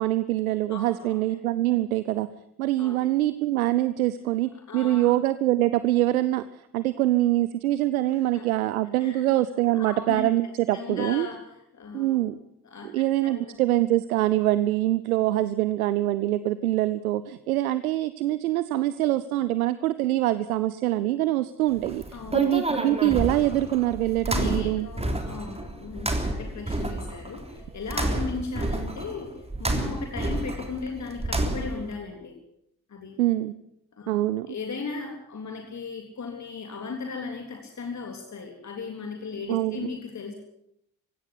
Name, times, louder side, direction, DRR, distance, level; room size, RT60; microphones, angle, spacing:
voice 1, 0.0-2.3 2.6-11.3 11.9-12.4 12.8-22.0 22.3-24.9 33.2-33.5 34.1-34.5 39.5-39.9, right 15 dB, 80° right, 15 dB, 0.7 m, -24 dB
voice 2, 0.7-1.2 2.8-3.1 4.7-5.1 8.1-8.4 9.0-9.2 9.7-12.2 12.6-13.6 22.1-22.5 24.3-32.4 32.9-33.2 33.9-34.2 34.5-40.3, left 4 dB, 40° left, 3 dB, 3.5 m, -37 dB
sound 1, 21.7-31.9, right 1 dB, 15° right, 3.5 m, -30 dB
17.0 x 16.5 x 9.8 m, 0.78 s
figure-of-eight pair, 45°, 43 cm